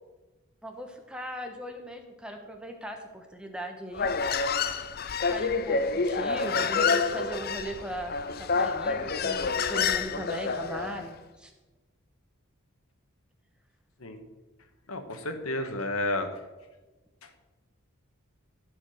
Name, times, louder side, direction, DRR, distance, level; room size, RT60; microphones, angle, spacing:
voice 1, 0.6-4.4 5.2-11.5, right 1 dB, 5° right, 3 dB, 1.2 m, -39 dB
Human voice, 3.9-11.0, left 5 dB, 45° left, 0.5 m, -28 dB
voice 2, 14.9-16.3, left 1 dB, 90° left, 7 dB, 1.4 m, -31 dB
14.0 x 5.0 x 6.5 m, 1.2 s
head